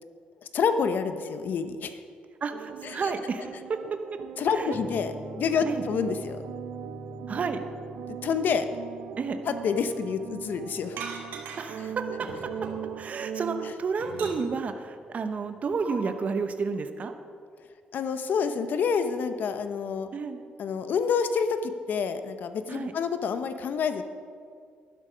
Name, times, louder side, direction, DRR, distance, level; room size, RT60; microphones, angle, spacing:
voice 1, 0.5-2.0 4.4-6.4 8.2-8.7 9.5-11.0 17.9-20.1 20.6-24.0, left 6 dB, 65° left, 9 dB, 0.9 m, -28 dB
voice 2, 2.4-4.2 4.5-4.8 5.6-5.8 7.3-7.6 9.2-9.4 11.6-12.5 13.0-17.1 20.1-20.4 22.7-22.9, right 4 dB, 45° right, 8 dB, 0.9 m, -31 dB
sound 1, 2.5-13.7, right 9 dB, 75° right, 0.4 m, -40 dB
sound 2, 4.7-15.9, left 1 dB, 5° right, 1.3 m, -47 dB
sound 3, 11.0-11.8 12.2-13.2 13.6-14.7 15.8-15.9, right 4 dB, 90° right, 2.3 m, -39 dB
12.0 x 11.5 x 5.2 m, 2.2 s
cardioid pair, 95°, 3 cm